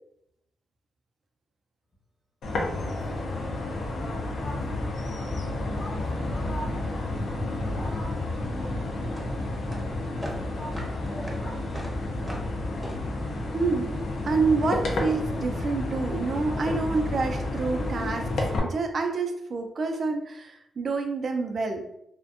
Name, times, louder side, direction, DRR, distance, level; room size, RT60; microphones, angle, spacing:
sound 1, 2.4-18.6, left 2 dB, 75° left, 0.5 m, -31 dB
voice 1, 2.7-5.3 5.7-9.2 9.6-11.7 12.0-12.4, left 1 dB, 30° left, -2 dB, 0.8 m, -44 dB
sound 2, 8.4-14.3, equal, 10° right, 0.7 m, -39 dB
voice 2, 13.5-13.9 14.3-18.3 18.6-21.9, right 4 dB, 55° right, 4 dB, 0.4 m, -28 dB
2.5 x 2.1 x 2.4 m, 0.77 s
cardioid pair, 85°, 0 cm